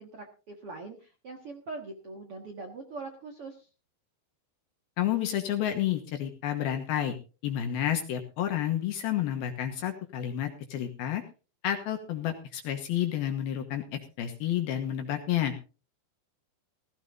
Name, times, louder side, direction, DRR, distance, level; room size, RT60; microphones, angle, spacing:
voice 1, 0.0-3.7, right 3 dB, 60° right, 3 dB, 1.5 m, -42 dB
voice 2, 5.0-7.2 7.4-11.2 11.6-15.5, left 11 dB, 70° left, 6 dB, 2.7 m, -30 dB
16.5 x 15.5 x 2.6 m, 0.33 s
omnidirectional pair, 5.2 m